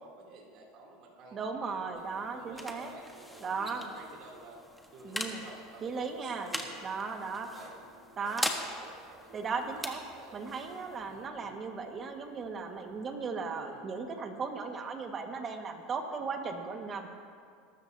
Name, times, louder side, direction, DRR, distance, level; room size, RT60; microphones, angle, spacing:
voice 1, 0.0-1.4 1.7-4.6 4.9-10.4 11.0-11.6 13.5-13.8, right 2 dB, 60° right, -2 dB, 2.9 m, -52 dB
voice 2, 1.3-2.9 3.4-3.9 5.0-5.4 5.8-6.5 6.8-7.5 8.2-8.5 9.3-10.0 10.3-17.1, right 5 dB, 30° right, 4 dB, 1.6 m, -36 dB
sound 1, 1.8-13.1, equal, ahead, 1.4 m, -42 dB
21.5 x 12.5 x 2.8 m, 2.2 s
supercardioid pair, 115°, 0 cm